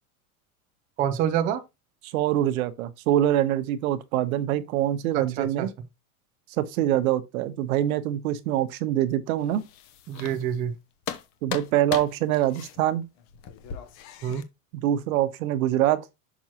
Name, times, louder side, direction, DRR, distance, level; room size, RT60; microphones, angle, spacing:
voice 1, 1.0-1.6 5.1-5.7 10.1-10.7 14.2-14.4, right 9 dB, 20° right, 0.4 m, -27 dB
voice 2, 2.1-5.7 6.6-9.6 11.4-13.1 14.8-16.0, right 12 dB, 75° right, 1.0 m, -24 dB
sound 1, 9.4-10.7 11.0-14.4, left 9 dB, 40° left, 0.9 m, -38 dB
6.1 x 6.0 x 2.9 m
supercardioid pair, 160°, 43 cm